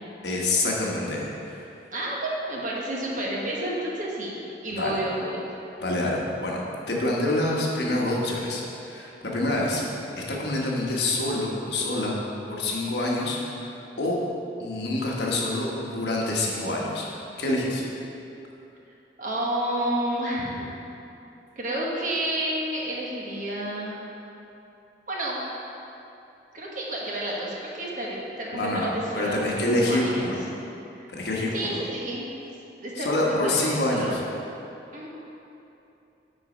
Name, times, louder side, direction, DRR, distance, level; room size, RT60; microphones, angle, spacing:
voice 1, 0.2-1.6 4.7-5.0 5.8-6.6 6.9-9.8 10.2-12.2 12.5-14.2 14.6-17.1 17.4-17.8 28.5-28.9 29.1-30.4 31.1-31.8 33.0-34.2, left 1 dB, 70° left, -3 dB, 1.2 m, -26 dB
voice 2, 1.9-4.4 4.6-5.4 9.6-9.8 19.2-20.7 21.6-24.0 25.1-25.4 26.5-30.3 31.0-31.1 31.5-32.3 32.8-33.6 33.9-34.2 34.9-35.2, right 1 dB, 45° right, -3 dB, 1.3 m, -30 dB
9.3 x 4.1 x 5.1 m, 2.9 s
head